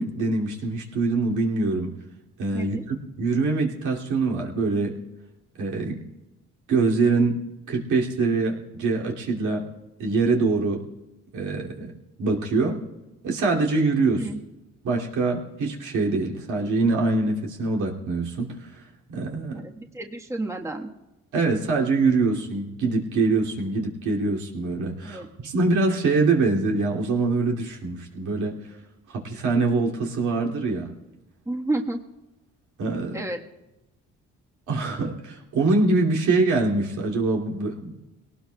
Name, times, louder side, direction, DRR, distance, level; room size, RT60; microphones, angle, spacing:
voice 1, 0.0-1.9 2.4-5.0 5.6-6.0 6.7-9.7 10.0-10.8 11.3-11.9 12.2-12.8 13.2-14.3 14.8-18.5 19.1-19.6 21.3-28.6 29.1-30.9 32.8-33.2 34.7-37.9, right 3 dB, 80° right, -1 dB, 2.7 m, -24 dB
voice 2, 19.5-20.9 25.0-25.3 31.4-32.0 33.1-33.4, right 2 dB, 10° right, 1 dB, 1.4 m, -30 dB
22.0 x 18.5 x 2.3 m, 1.0 s
cardioid pair, 90°, 30 cm